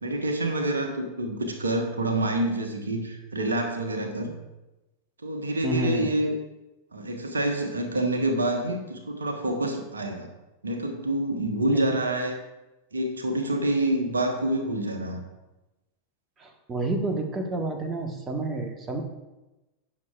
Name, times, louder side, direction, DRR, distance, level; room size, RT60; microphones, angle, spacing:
voice 1, 0.0-4.3 5.2-6.3 6.9-10.3 10.6-12.4 12.9-15.2, right 1 dB, 75° right, 4 dB, 1.2 m, -27 dB
voice 2, 5.6-6.1 11.7-11.9 16.4-19.0, right 2 dB, 25° right, 5 dB, 1.2 m, -29 dB
17.0 x 6.7 x 2.4 m, 1.0 s
figure-of-eight pair, 90°, 0 cm